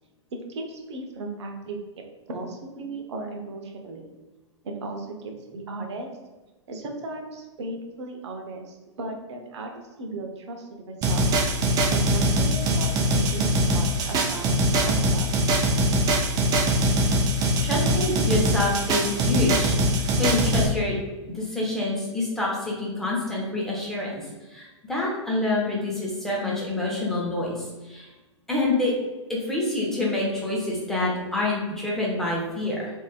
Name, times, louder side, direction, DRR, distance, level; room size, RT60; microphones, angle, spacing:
voice 1, 0.3-1.8 2.3-4.1 4.6-6.1 6.7-11.3 11.9-15.3, right 2 dB, 65° right, 3 dB, 0.6 m, -36 dB
sound 1, 11.0-20.7, right 1 dB, 25° right, 0.4 m, -22 dB
voice 2, 17.6-21.0 21.3-24.2 24.5-28.1 28.5-28.9 29.3-32.9, left 2 dB, 5° left, -5 dB, 0.8 m, -27 dB
3.1 x 2.6 x 2.3 m, 1.1 s
figure-of-eight pair, 105°, 15 cm